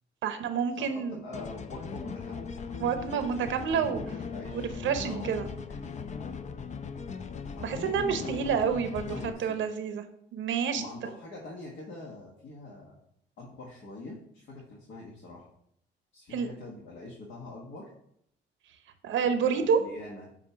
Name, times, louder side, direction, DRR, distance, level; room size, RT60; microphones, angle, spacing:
voice 1, 0.2-1.2 2.8-4.0 4.5-5.5 7.6-10.0 10.3-10.8 16.3-16.5 19.0-19.8, right 6 dB, 75° right, 8 dB, 0.7 m, -28 dB
voice 2, 0.7-2.7 3.7-4.7 5.0-5.9 7.4-8.7 9.0-9.6 10.7-13.0 13.4-15.5 16.1-17.9 19.5-20.3, left 2 dB, 70° left, -3 dB, 1.5 m, -44 dB
sound 1, 1.3-9.3, left 5 dB, 35° left, 0.5 m, -39 dB
7.7 x 2.7 x 5.6 m, 0.72 s
cardioid pair, 90°, 20 cm